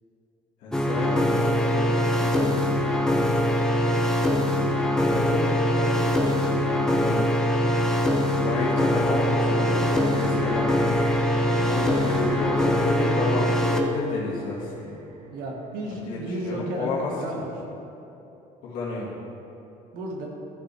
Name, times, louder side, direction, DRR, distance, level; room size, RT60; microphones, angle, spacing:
voice 1, 0.6-2.7 4.9-7.3 8.4-10.7 11.7-15.0 15.9-17.4 18.6-19.1, left 3 dB, 75° left, -6 dB, 2.1 m, -31 dB
sound 1, 0.7-13.8, left 1 dB, 5° left, 0.6 m, -23 dB
sound 2, 8.7-15.8, right 3 dB, 45° right, 0.9 m, -40 dB
voice 2, 15.3-17.5 19.9-20.3, right 1 dB, 75° right, -1 dB, 1.7 m, -33 dB
14.0 x 5.4 x 3.4 m, 3.0 s
cardioid pair, 160°, 15 cm